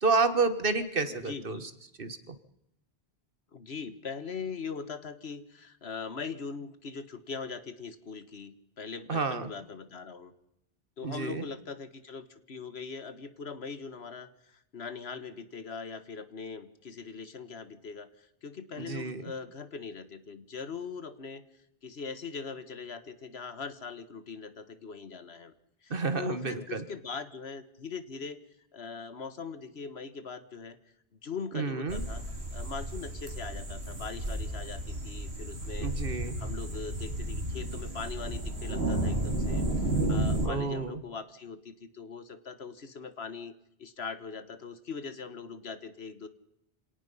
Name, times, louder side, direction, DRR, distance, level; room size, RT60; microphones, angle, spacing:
voice 1, 0.0-1.6 2.0-2.3 9.1-9.5 11.0-11.4 18.8-19.2 25.9-26.8 31.5-32.0 35.8-36.4 40.4-41.0, right 4 dB, 60° right, 11 dB, 1.7 m, -30 dB
voice 2, 1.1-1.7 3.5-10.3 11.0-21.4 21.8-25.5 25.8-28.4 28.7-30.8 31.2-32.2 32.5-35.9 36.4-46.3, left 5 dB, 75° left, 12 dB, 1.6 m, -41 dB
sound 1, 31.9-40.5, right 1 dB, 75° right, 3.3 m, -32 dB
26.5 x 18.0 x 5.6 m, 0.79 s
omnidirectional pair, 1.1 m